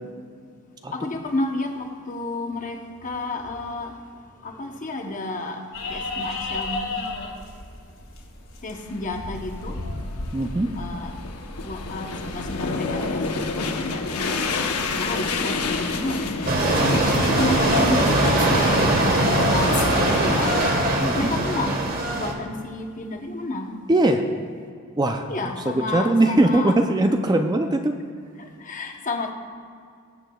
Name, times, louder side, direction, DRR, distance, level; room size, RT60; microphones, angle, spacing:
voice 1, 0.9-3.9 4.3-7.1 8.6-9.8 10.8-11.1 11.6-14.5 15.0-20.7 21.0-21.9 22.1-23.8 25.3-26.8 28.4-29.3, left 2 dB, 35° left, 4 dB, 0.9 m, -31 dB
sound 1, 5.7-17.9, left 2 dB, 60° left, 2.2 m, -37 dB
sound 2, 8.8-20.7, left 4 dB, 80° left, 0.9 m, -29 dB
voice 2, 10.3-10.7 21.0-21.3 23.9-24.2 25.0-25.3 25.7-28.0, right 2 dB, 20° right, 5 dB, 0.4 m, -20 dB
sound 3, 16.5-22.3, right 1 dB, 40° right, 1.3 m, -21 dB
21.0 x 8.0 x 2.3 m, 2.3 s
head